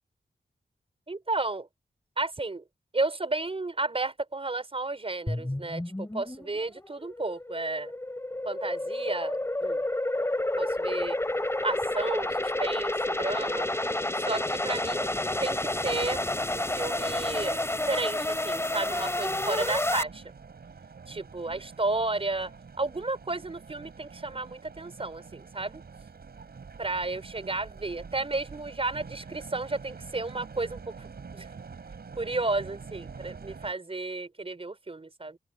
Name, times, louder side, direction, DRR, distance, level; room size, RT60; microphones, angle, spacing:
voice 1, 1.1-1.7 2.2-2.6 2.9-7.9 8.4-9.4 9.6-9.8 10.6-11.2 11.6-13.7 14.1-15.1 15.4-16.2 16.5-20.2 21.1-25.8 26.8-31.1 31.3-31.5 32.2-35.4, right 2 dB, 35° right, 6.1 m, -32 dB
sound 1, 5.3-20.0, left 1 dB, 15° left, 4.0 m, -30 dB
sound 2, 18.8-33.7, right 5 dB, 75° right, 7.9 m, -46 dB
open air
wide cardioid pair, 110°, 16 cm